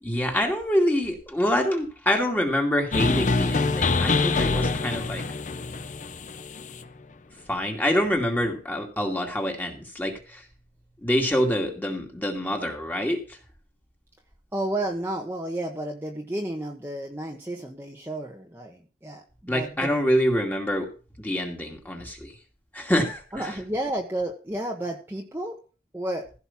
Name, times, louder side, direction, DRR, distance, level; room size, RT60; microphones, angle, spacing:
voice 1, 0.0-5.2 7.5-10.4 11.0-13.2 19.5-20.9 21.2-22.3 22.7-23.5, equal, 10° left, 2 dB, 2.4 m, -26 dB
sound 1, 2.9-6.8, left 3 dB, 45° left, 0.8 m, -25 dB
voice 2, 14.5-20.0 23.3-25.5 25.9-26.2, right 1 dB, 15° right, 0 dB, 1.3 m, -31 dB
16.0 x 5.6 x 5.9 m, 0.36 s
head